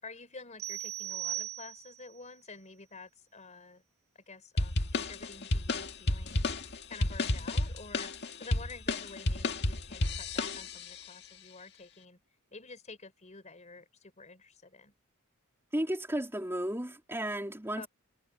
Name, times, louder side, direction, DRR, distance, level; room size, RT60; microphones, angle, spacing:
voice 1, 0.0-3.8 4.3-6.4 6.9-8.1 8.4-12.2 12.5-14.9 17.8-17.9, left 3 dB, 35° left, 4.4 m, -49 dB
sound 1, 0.6-2.1, right 13 dB, 75° right, 1.6 m, -38 dB
sound 2, 4.6-11.0, left 2 dB, 50° left, 1.9 m, -32 dB
voice 2, 15.7-17.9, right 1 dB, 10° right, 3.5 m, -33 dB
head